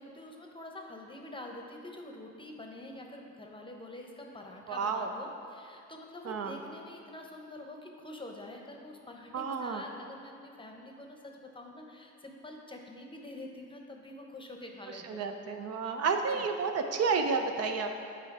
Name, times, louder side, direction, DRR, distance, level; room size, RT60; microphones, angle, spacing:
voice 1, 0.0-15.3 16.1-16.5, left 1 dB, 15° left, 1 dB, 0.8 m, -46 dB
voice 2, 4.7-5.1 6.3-6.6 9.3-9.8 15.1-17.9, right 5 dB, 55° right, 5 dB, 0.5 m, -31 dB
6.8 x 4.4 x 4.7 m, 2.5 s
cardioid pair, 90°, 30 cm